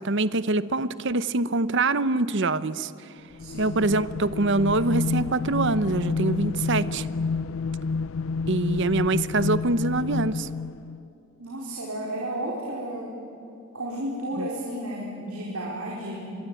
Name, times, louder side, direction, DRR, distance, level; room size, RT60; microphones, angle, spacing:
voice 1, 0.0-2.9 3.6-7.1 8.5-10.5 14.4-14.5, right 2 dB, 55° right, 16 dB, 0.8 m, -24 dB
sound 1, 3.3-11.0, left 4 dB, 65° left, 0.5 m, -29 dB
voice 2, 3.4-3.8 11.4-13.2 13.7-16.3, right 1 dB, 75° right, -2 dB, 4.5 m, -33 dB
25.5 x 22.0 x 9.1 m, 2.9 s
head